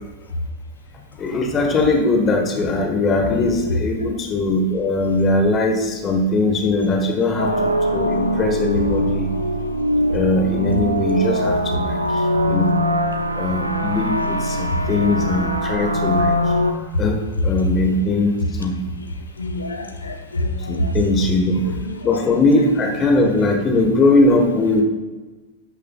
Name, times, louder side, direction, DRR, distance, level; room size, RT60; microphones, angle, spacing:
voice 1, 1.2-9.3 10.1-11.9 12.4-12.7 13.4-16.3 17.0-17.2 17.4-18.3 18.6-18.9 20.7-21.6 22.0-24.8, left 2 dB, 25° left, 2 dB, 1.4 m, -20 dB
voice 2, 3.3-3.8 6.9-7.7 9.3-9.4 10.0-10.1 11.1-11.3 11.8-12.0 14.1-14.2 14.6-14.8 15.1-15.7 16.9-17.0 17.7-18.0 18.4-18.5 19.4-21.0 21.5-22.4 23.0-23.1, left 1 dB, 75° left, 6 dB, 1.0 m, -27 dB
sound 1, 7.4-16.7, equal, 85° right, 0.7 m, -22 dB
13.0 x 9.0 x 2.4 m, 1.2 s
figure-of-eight pair, 90°, 0 cm